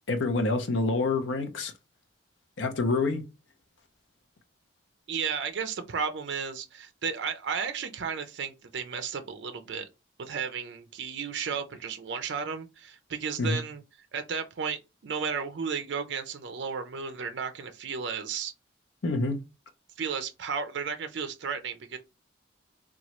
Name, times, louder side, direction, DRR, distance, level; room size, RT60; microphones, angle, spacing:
voice 1, 0.1-1.7 2.6-3.2 13.4-13.6 19.0-19.4, left 3 dB, 80° left, 0.6 m, -27 dB
voice 2, 5.1-9.9 10.2-13.8 14.1-18.5 20.0-22.0, right 6 dB, 70° right, 0.4 m, -33 dB
3.0 x 2.3 x 2.9 m
head